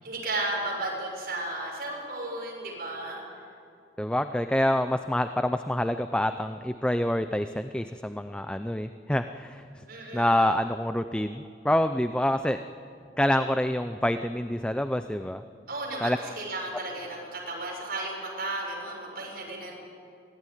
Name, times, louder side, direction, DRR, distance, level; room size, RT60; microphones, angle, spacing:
voice 1, 0.0-3.2 9.9-10.5 15.7-19.7, right 2 dB, 55° right, -2 dB, 6.5 m, -34 dB
voice 2, 4.0-9.8 10.1-12.6 13.2-15.4 16.0-16.2, left 1 dB, 5° left, 9 dB, 0.5 m, -27 dB
24.0 x 16.0 x 10.0 m, 2.5 s
head